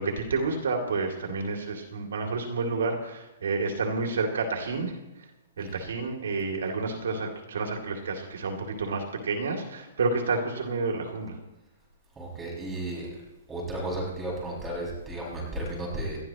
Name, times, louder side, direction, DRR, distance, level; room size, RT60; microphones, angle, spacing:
voice 1, 0.0-5.3 5.6-11.4, right 3 dB, 80° right, 1 dB, 2.8 m, -30 dB
voice 2, 12.2-13.1 13.5-16.2, right 1 dB, 10° right, -3 dB, 6.2 m, -34 dB
30.0 x 13.0 x 3.1 m, 0.98 s
hypercardioid pair, 160°, 0 cm